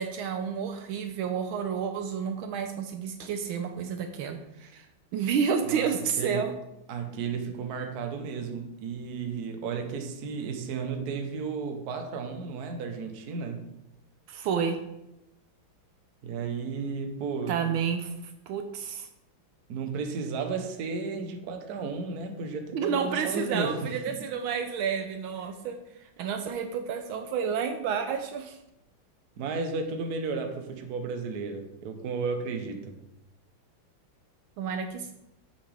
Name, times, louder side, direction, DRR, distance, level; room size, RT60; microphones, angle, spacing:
voice 1, 0.0-4.9 5.1-6.5 14.3-14.8 17.5-18.1 18.5-19.1 22.7-28.6 34.6-35.1, right 6 dB, 80° right, 1.4 m, -30 dB
voice 2, 6.9-13.6 16.2-17.6 19.7-24.2 29.4-33.0, right 5 dB, 55° right, 1.3 m, -33 dB
7.8 x 6.2 x 3.3 m
omnidirectional pair, 2.3 m